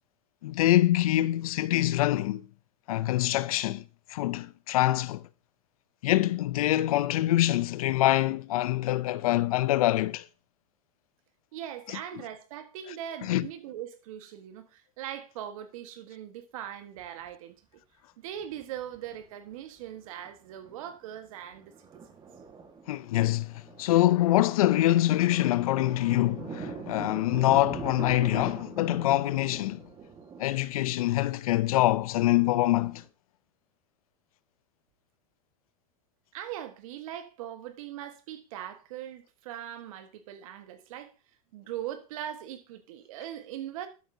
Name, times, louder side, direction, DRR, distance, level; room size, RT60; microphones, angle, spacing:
voice 1, 0.4-2.5 2.9-3.8 4.1-5.2 6.0-10.3 11.9-12.0 13.2-13.5 22.9-29.8 30.4-33.0, left 15 dB, 75° left, 0.5 m, -25 dB
voice 2, 11.5-17.5 18.2-21.7 36.3-41.1 41.5-43.9, right 11 dB, 70° right, 1.5 m, -40 dB
Thunder, 17.0-17.1 18.4-19.2 19.5-19.6 20.0-20.3 20.6-33.0, right 5 dB, 25° right, 1.6 m, -43 dB
12.0 x 7.8 x 2.7 m
hypercardioid pair, 110°, 19 cm